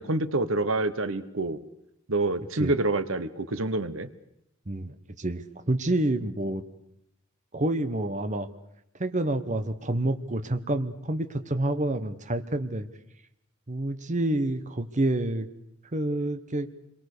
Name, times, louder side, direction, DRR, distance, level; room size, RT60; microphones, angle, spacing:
voice 1, 0.0-1.6 2.1-4.1, right 2 dB, 65° right, 13 dB, 1.3 m, -27 dB
voice 2, 4.7-6.6 7.5-8.5 9.0-12.9 13.7-15.5 15.9-16.7, right 1 dB, 35° right, 9 dB, 1.2 m, -28 dB
28.5 x 23.0 x 6.8 m, 0.78 s
head